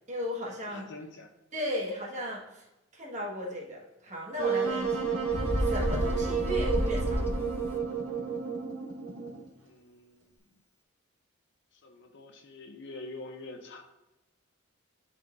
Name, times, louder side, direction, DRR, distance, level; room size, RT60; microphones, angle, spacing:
voice 1, 0.1-0.9 1.5-2.6 2.9-5.2 5.6-7.3, left 1 dB, 35° right, -4 dB, 1.8 m, -36 dB
voice 2, 0.7-1.3 9.6-10.2 11.8-13.8, left 2 dB, 60° left, 4 dB, 0.8 m, -45 dB
Wind instrument woodwind instrument, 4.4-9.5, right 5 dB, 70° right, 2.0 m, -31 dB
Bird, 5.3-7.8, equal, 10° left, 0.5 m, -30 dB
10.5 x 4.1 x 2.6 m, 0.99 s
head